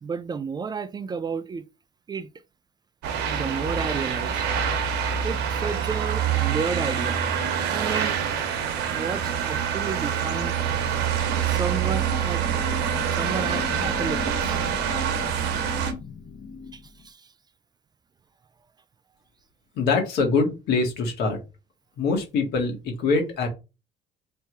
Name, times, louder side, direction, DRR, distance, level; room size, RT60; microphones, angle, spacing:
voice 1, 0.0-1.7 2.1-2.3 3.3-4.4 5.2-7.3 7.7-8.2 8.9-10.5 11.4-12.4 13.1-14.6 16.7-17.2, right 5 dB, 25° right, 0.3 m, -32 dB
sound 1, 3.0-15.9, right 8 dB, 85° right, 0.8 m, -26 dB
sound 2, 10.3-17.1, left 4 dB, 45° left, 0.6 m, -36 dB
voice 2, 19.7-21.4 22.0-23.5, left 4 dB, 80° left, 1.6 m, -24 dB
3.4 x 2.7 x 4.5 m
cardioid pair, 110°, 17 cm